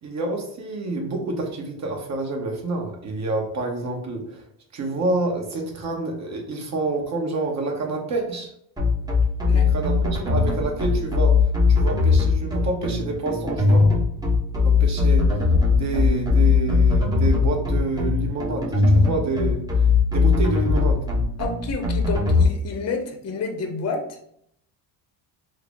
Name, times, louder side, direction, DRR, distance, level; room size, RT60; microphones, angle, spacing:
voice 1, 0.0-4.4 4.7-8.5 9.5-11.4 11.7-13.8 14.6-21.0, right 2 dB, 40° right, 1 dB, 0.9 m, -28 dB
sound 1, 8.8-22.5, left 4 dB, 10° right, 0.7 m, -19 dB
voice 2, 21.4-24.2, left 4 dB, 35° left, 4 dB, 0.7 m, -29 dB
3.7 x 2.0 x 3.4 m, 0.68 s
cardioid pair, 105°, 44 cm